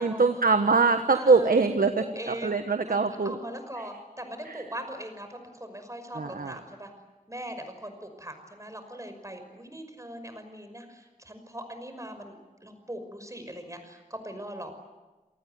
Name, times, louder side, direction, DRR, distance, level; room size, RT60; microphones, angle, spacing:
voice 1, 0.0-3.4 4.5-4.6 6.1-6.6, right 4 dB, 80° right, 7 dB, 1.4 m, -23 dB
voice 2, 1.1-1.5 2.0-2.6 2.8-3.0 3.2-6.9 7.3-14.8, right 1 dB, 20° right, 7 dB, 5.8 m, -40 dB
28.5 x 19.0 x 9.5 m, 1.2 s
wide cardioid pair, 65°, 14 cm